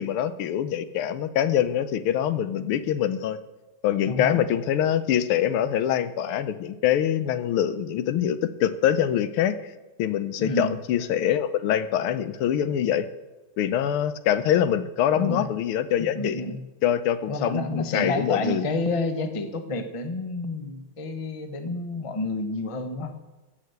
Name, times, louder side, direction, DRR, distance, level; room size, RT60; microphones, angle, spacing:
voice 1, 0.0-3.4 3.8-9.6 10.0-13.1 13.6-16.4 16.8-18.6, left 10 dB, 85° left, 12 dB, 1.6 m, -24 dB
voice 2, 4.1-4.4 10.4-10.8 15.1-15.5 16.0-16.6 17.3-23.1, left 2 dB, 25° left, 7 dB, 0.7 m, -29 dB
16.0 x 7.1 x 7.9 m, 1.1 s
omnidirectional pair, 2.3 m